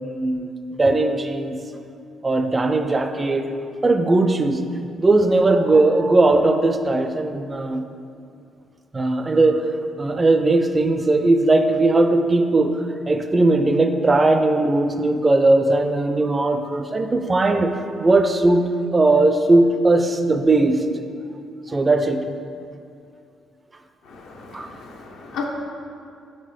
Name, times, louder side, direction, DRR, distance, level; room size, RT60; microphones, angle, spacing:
voice 1, 0.0-1.6 2.2-3.5 3.8-4.7 5.0-7.8 8.9-9.7 10.0-20.8 21.7-22.3 24.5-24.7, right 2 dB, 25° right, 7 dB, 0.4 m, -18 dB
voice 2, 24.0-25.4, left 5 dB, 85° left, -1 dB, 0.8 m, -35 dB
6.6 x 3.1 x 5.0 m, 2.4 s
cardioid pair, 90°, 0 cm